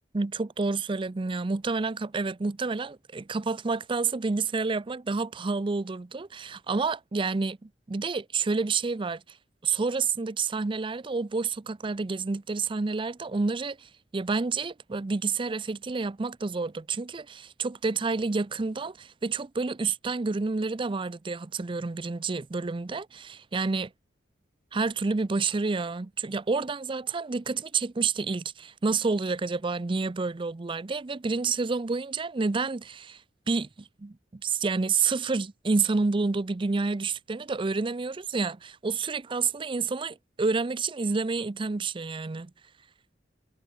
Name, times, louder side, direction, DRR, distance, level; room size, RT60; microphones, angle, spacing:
voice 1, 0.1-9.2 9.6-23.9 24.7-33.2 33.5-42.5, right 4 dB, 25° right, 0.5 m, -29 dB
head